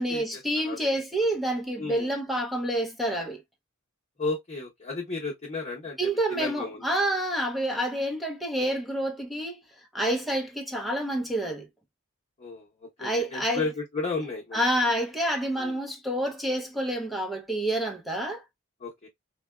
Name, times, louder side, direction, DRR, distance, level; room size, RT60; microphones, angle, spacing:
voice 1, 0.0-3.4 6.0-9.6 9.9-11.7 13.0-13.6 14.5-18.4, right 1 dB, ahead, 0.7 m, -28 dB
voice 2, 1.8-2.1 4.2-6.8 12.4-12.7 13.0-14.6 15.6-15.8 18.8-19.1, left 3 dB, 35° left, 0.9 m, -33 dB
3.9 x 2.2 x 2.3 m
head